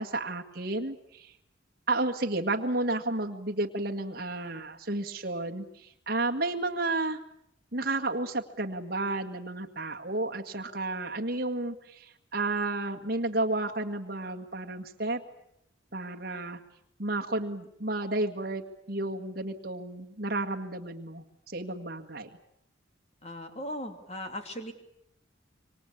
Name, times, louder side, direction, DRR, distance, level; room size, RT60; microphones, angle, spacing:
voice 1, 0.0-1.3 1.9-7.2 7.7-15.2 15.9-16.6 17.0-21.2 21.5-22.3, right 2 dB, 50° right, 2 dB, 1.9 m, -32 dB
voice 2, 23.2-24.7, equal, 30° left, 6 dB, 2.9 m, -38 dB
26.5 x 24.5 x 8.6 m, 0.76 s
head